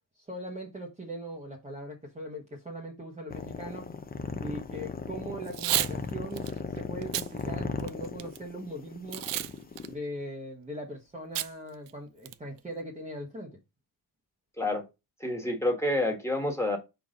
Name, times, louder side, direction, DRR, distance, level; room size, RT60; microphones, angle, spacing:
voice 1, 0.3-3.9 4.4-9.2 9.8-13.6, right 1 dB, 15° right, 1.1 m, -40 dB
sound 1, 3.3-10.0, left 4 dB, 20° left, 0.6 m, -37 dB
Packing tape duct tape / Tearing, 5.5-5.9 6.4-6.5 7.0-7.3 7.8-8.4 9.1-9.5 9.8-9.9 11.4-11.5 11.9-12.0 12.3-12.6, right 14 dB, 85° right, 0.5 m, -30 dB
voice 2, 15.2-16.8, left 1 dB, 5° left, 1.6 m, -28 dB
4.6 x 4.1 x 5.1 m
cardioid pair, 130°, 41 cm